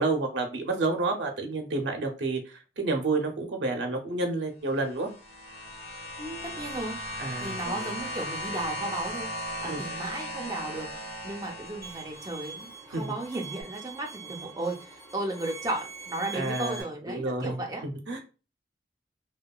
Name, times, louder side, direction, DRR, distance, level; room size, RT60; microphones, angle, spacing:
voice 1, 0.0-5.1 7.2-7.9 9.7-9.8 12.9-13.2 16.3-18.2, right 3 dB, 90° right, 3 dB, 0.5 m, -30 dB
sound 1, 4.8-12.6 13.6-13.7, equal, 75° left, 1.3 m, -37 dB
voice 2, 6.2-17.8, right 2 dB, 20° right, 0 dB, 0.5 m, -35 dB
Bowed string instrument, 11.8-16.8, right 5 dB, 15° left, 0.8 m, -43 dB
2.8 x 2.2 x 2.2 m, 0.33 s
head